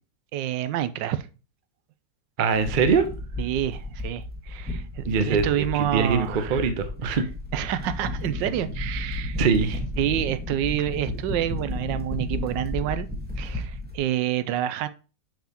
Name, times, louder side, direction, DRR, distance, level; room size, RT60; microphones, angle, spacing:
voice 1, 0.3-1.3 3.4-6.7 7.1-7.2 7.5-9.4 10.0-13.1 13.4-14.9, right 11 dB, 85° right, 1.3 m, -28 dB
voice 2, 2.4-3.1 5.0-7.2 9.4-9.8, right 5 dB, 60° right, 0.5 m, -23 dB
sound 1, 2.5-14.0, left 1 dB, 5° right, 1.1 m, -33 dB
7.2 x 5.7 x 2.9 m
omnidirectional pair, 1.9 m